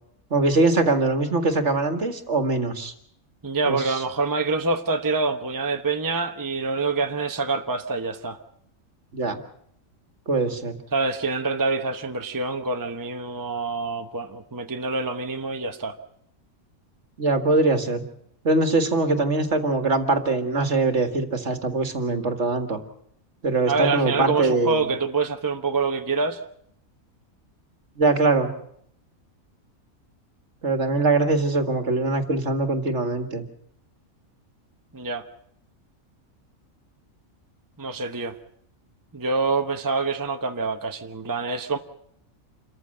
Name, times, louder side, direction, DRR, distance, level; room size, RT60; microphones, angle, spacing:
voice 1, 0.3-2.9 3.7-4.0 9.1-9.4 10.3-10.7 17.2-18.1 18.4-22.8 23.4-24.8 28.0-28.5 30.6-33.5, right 3 dB, 55° right, 7 dB, 2.1 m, -22 dB
voice 2, 3.4-8.4 10.9-16.0 23.7-26.4 34.9-35.2 37.8-38.3 39.1-41.8, right 3 dB, 15° right, 6 dB, 1.0 m, -26 dB
27.5 x 14.5 x 7.8 m, 0.70 s
omnidirectional pair, 1.5 m